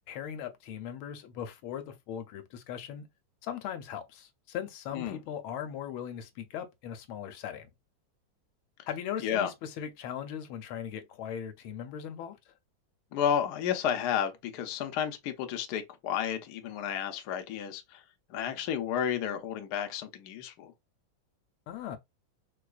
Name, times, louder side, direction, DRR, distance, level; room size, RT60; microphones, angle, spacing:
voice 1, 0.1-3.1 3.4-7.7 8.9-12.4 21.7-22.0, left 9 dB, 90° left, 1.5 m, -39 dB
voice 2, 13.1-18.0 18.3-20.7, left 9 dB, 65° left, 1.1 m, -32 dB
4.6 x 2.3 x 2.4 m
omnidirectional pair, 2.2 m